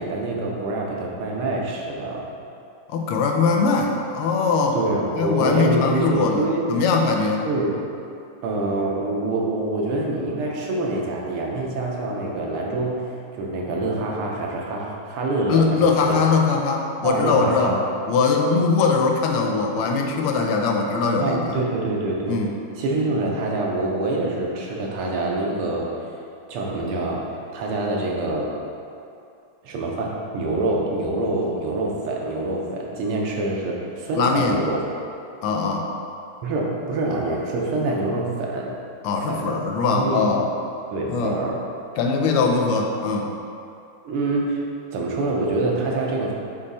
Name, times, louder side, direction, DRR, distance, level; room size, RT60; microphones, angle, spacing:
voice 1, 0.0-2.3 4.7-6.7 7.4-7.7 8.4-16.2 17.0-17.8 21.2-22.4 22.8-26.2 26.5-28.6 29.6-34.8 36.4-38.7 39.3-39.6 39.9-40.2 40.9-41.6 44.0-44.6 44.9-46.3, right 2 dB, 85° right, -2 dB, 1.8 m, -25 dB
voice 2, 2.9-4.8 5.2-7.5 15.5-17.7 18.1-21.4 22.3-22.5 34.1-34.6 35.4-35.9 39.0-40.4 41.1-41.4 42.0-43.3, left 4 dB, 85° left, 1 dB, 1.5 m, -21 dB
7.3 x 3.1 x 4.1 m, 2.5 s
omnidirectional pair, 2.4 m